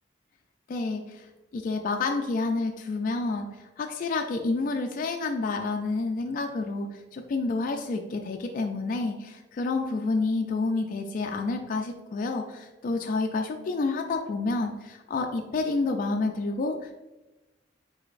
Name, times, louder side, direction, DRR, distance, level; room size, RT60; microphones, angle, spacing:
voice 1, 0.7-1.2 1.5-3.5 3.8-17.0, left 3 dB, 45° left, 3 dB, 0.3 m, -29 dB
4.9 x 3.9 x 2.5 m, 1.1 s
head